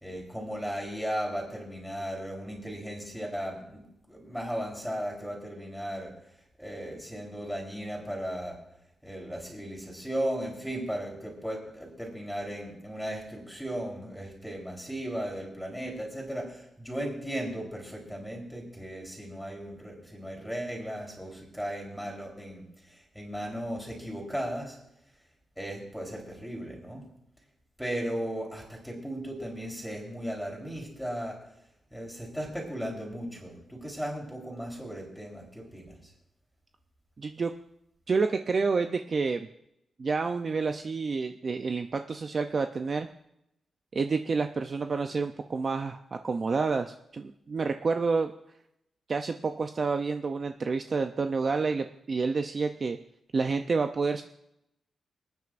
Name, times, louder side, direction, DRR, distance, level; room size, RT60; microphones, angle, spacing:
voice 1, 0.0-3.8 4.1-6.1 6.6-8.6 9.0-24.8 25.6-27.0 27.8-31.4 31.9-36.0, equal, ahead, -1 dB, 3.7 m, -36 dB
voice 2, 37.2-37.5 38.1-39.5 40.0-43.1 43.9-48.3 49.1-53.0 53.3-54.2, right 4 dB, 40° right, 7 dB, 0.5 m, -29 dB
26.5 x 9.4 x 2.5 m, 0.82 s
wide cardioid pair, 140°, 0 cm